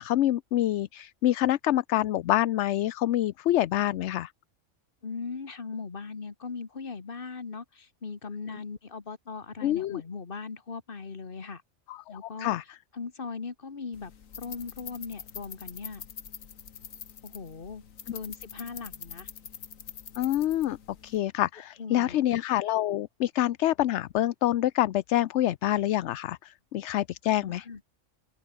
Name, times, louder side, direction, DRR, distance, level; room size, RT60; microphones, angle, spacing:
voice 1, 0.0-4.3 9.6-10.0 11.9-12.0 12.4-12.6 20.2-20.8 21.0-27.7, left 13 dB, 65° left, 0.8 m, -26 dB
voice 2, 5.0-11.6 12.1-12.6 12.9-14.1 14.4-16.0 17.2-17.8 18.1-19.3 21.8-22.2 27.4-27.8, left 4 dB, 45° left, 1.8 m, -39 dB
sound 1, 13.9-21.2, left 7 dB, 85° left, 1.7 m, -45 dB
open air
omnidirectional pair, 1.3 m